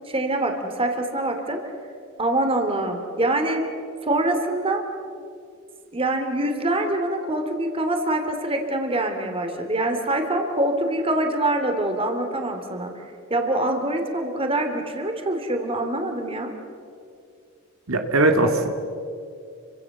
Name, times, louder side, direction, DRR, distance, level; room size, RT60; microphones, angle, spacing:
voice 1, 0.1-1.6 2.2-3.6 4.0-4.8 5.9-12.9 13.3-16.5, right 1 dB, 25° right, 5 dB, 2.9 m, -24 dB
voice 2, 17.9-18.7, right 2 dB, 75° right, 5 dB, 2.2 m, -19 dB
29.5 x 25.0 x 7.2 m, 2.4 s
head